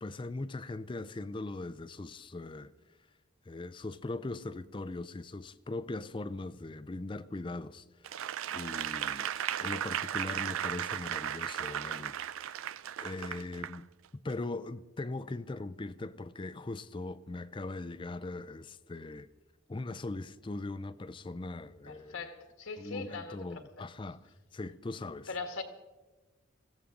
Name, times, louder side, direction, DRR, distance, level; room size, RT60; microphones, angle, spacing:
voice 1, 0.0-2.7 3.5-8.2 8.5-9.3 9.6-12.5 13.0-13.9 14.2-19.3 19.7-22.2 22.8-24.2 24.5-25.3, left 2 dB, 25° left, 0.4 m, -40 dB
Applause / Crowd, 8.0-13.8 14.3-14.4, right 10 dB, 80° right, 0.4 m, -36 dB
voice 2, 21.9-23.6 25.3-25.6, left 4 dB, 85° left, 1.8 m, -41 dB
21.0 x 15.0 x 3.8 m
head